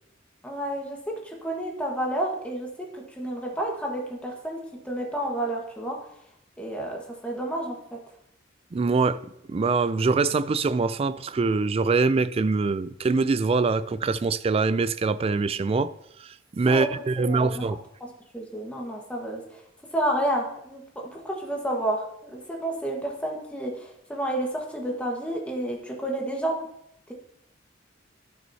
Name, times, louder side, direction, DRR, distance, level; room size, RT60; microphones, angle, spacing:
voice 1, 0.4-1.0 1.2-2.7 2.9-4.6 4.8-6.0 6.6-7.8 16.7-16.9 17.2-17.6 18.0-18.1 18.3-19.6 19.9-20.8 21.1-26.5, right 1 dB, 5° left, 1.4 m, -30 dB
voice 2, 8.7-9.2 9.5-15.9 16.2-17.8, right 4 dB, 30° right, 0.3 m, -24 dB
13.5 x 6.2 x 2.8 m
head